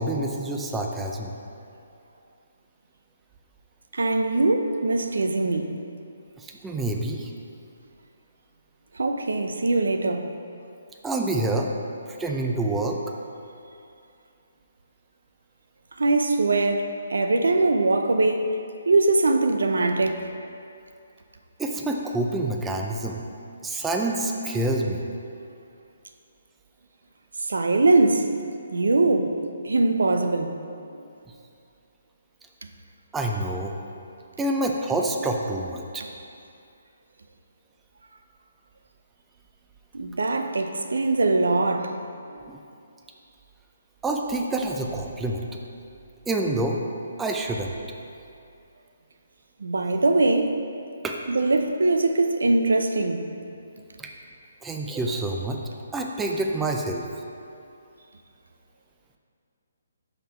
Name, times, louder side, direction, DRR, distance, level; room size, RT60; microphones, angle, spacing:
voice 1, 0.0-1.3 6.4-7.3 11.0-11.7 12.2-13.0 21.6-23.2 23.6-25.0 33.1-33.7 34.4-36.0 42.5-42.6 44.0-45.5 46.3-46.8 47.2-47.7 51.0-51.2 54.0-54.1 54.6-55.6 55.9-57.0, right 2 dB, 10° right, 0.5 m, -27 dB
voice 2, 3.9-5.8 8.9-10.3 16.0-18.6 18.8-20.3 27.5-28.3 28.7-29.3 29.6-30.5 39.9-42.0 42.3-42.4 49.6-50.6 51.3-53.3, right 2 dB, 80° right, 0.6 m, -22 dB
5.8 x 5.6 x 4.4 m
hypercardioid pair, 155°, 0 cm